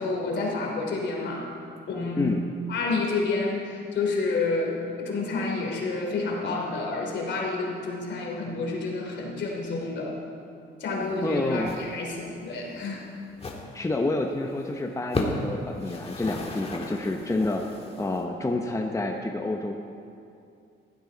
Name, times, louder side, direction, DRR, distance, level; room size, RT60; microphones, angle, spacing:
voice 1, 0.0-1.5 1.9-2.3 2.7-10.2 10.8-13.1, left 3 dB, 65° left, -1 dB, 3.0 m, -29 dB
sound 1, 11.0-11.3 11.6-11.9 12.1-12.3 12.7-12.8 13.3-13.7 14.1-14.2 14.5-14.6 15.0-15.5 15.8-18.2, left 2 dB, 30° left, 1.8 m, -34 dB
voice 2, 11.2-11.8 13.7-17.6 18.0-19.7, left 2 dB, 15° left, 3 dB, 0.9 m, -28 dB
15.0 x 12.0 x 4.0 m, 2.5 s
cardioid pair, 90°, 20 cm